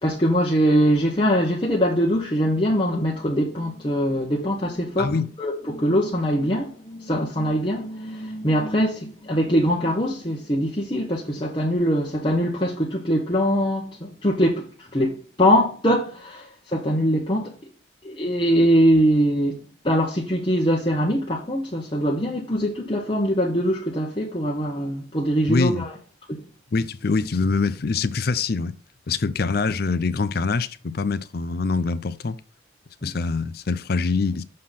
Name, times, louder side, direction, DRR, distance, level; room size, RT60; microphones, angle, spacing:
voice 1, 0.0-17.5 18.0-25.9 26.3-26.4 33.0-33.1, equal, 25° left, 1.0 m, -22 dB
voice 2, 25.5-25.9 26.7-28.8 29.1-32.4 33.0-34.4, left 4 dB, 50° left, 0.5 m, -24 dB
6.5 x 3.8 x 5.7 m
head